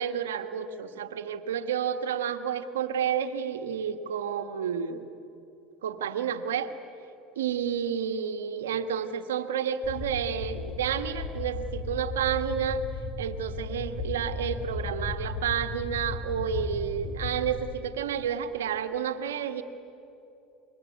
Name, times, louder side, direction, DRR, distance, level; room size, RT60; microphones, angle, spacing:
voice 1, 0.0-5.0 5.8-6.7 7.3-12.8 13.2-19.6, right 8 dB, 85° right, 8 dB, 1.5 m, -30 dB
sound 1, 9.8-17.6, left 3 dB, 40° left, 6.1 m, -35 dB
26.0 x 22.5 x 9.6 m, 2.9 s
hypercardioid pair, 85°, 0 cm